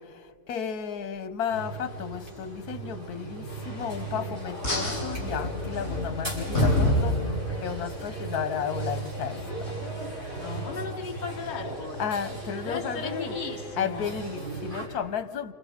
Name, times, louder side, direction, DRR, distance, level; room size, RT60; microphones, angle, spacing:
voice 1, 0.0-9.8 12.0-13.4 13.8-15.5, left 7 dB, 85° left, 1.4 m, -33 dB
sound 1, 1.5-14.9, right 2 dB, 35° right, 5.6 m, -36 dB
sound 2, 4.6-7.8, left 1 dB, 55° left, 7.4 m, -27 dB
voice 2, 10.4-12.1 12.6-14.1, left 5 dB, 30° left, 1.4 m, -36 dB
29.5 x 27.5 x 5.0 m
omnidirectional pair, 1.6 m